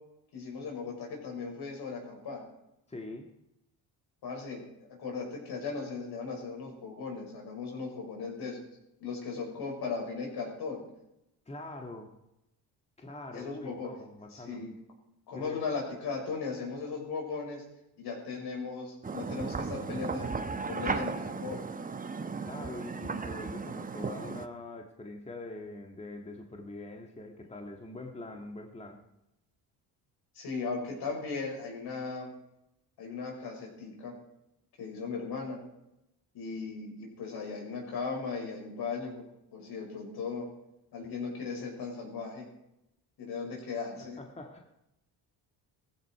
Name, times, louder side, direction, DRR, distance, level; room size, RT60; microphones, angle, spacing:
voice 1, 0.3-2.4 4.2-4.6 5.0-8.6 9.0-10.8 13.3-13.9 14.3-14.7 15.3-17.6 18.0-20.3 20.7-21.6 30.3-32.3 33.0-34.1 34.8-35.6 36.3-39.2 39.5-40.4 40.9-42.4 43.2-44.2, left 4 dB, 70° left, 1 dB, 6.2 m, -37 dB
voice 2, 2.9-3.3 11.4-12.2 13.0-14.7 15.3-15.6 22.4-29.1 44.0-44.7, left 2 dB, 15° left, 3 dB, 1.7 m, -44 dB
sound 1, 19.0-24.5, right 4 dB, 20° right, 1.0 m, -35 dB
17.0 x 15.0 x 4.7 m, 0.87 s
cardioid pair, 105°, 41 cm